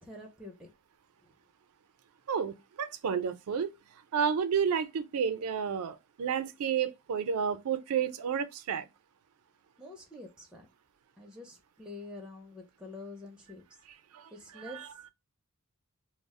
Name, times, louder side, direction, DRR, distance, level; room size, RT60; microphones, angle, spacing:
voice 1, 0.0-0.7 1.2-1.4 9.8-10.7 11.2-13.6 14.3-14.9, left 2 dB, 5° right, 0.4 m, -47 dB
voice 2, 2.3-3.7 4.1-8.9 14.1-14.3 14.7-14.9, right 7 dB, 80° right, 0.4 m, -31 dB
2.3 x 2.0 x 3.6 m
head